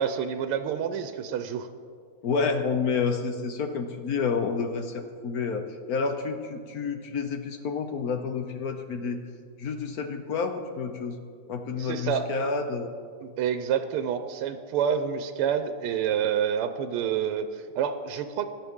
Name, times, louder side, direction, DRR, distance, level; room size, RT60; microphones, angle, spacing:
voice 1, 0.0-1.7 11.8-12.3 13.2-18.4, right 8 dB, 90° right, 9 dB, 1.6 m, -28 dB
voice 2, 2.2-9.2 9.6-11.2 11.5-12.9, left 5 dB, 65° left, 6 dB, 0.9 m, -29 dB
17.5 x 11.5 x 3.6 m, 2.1 s
omnidirectional pair, 2.4 m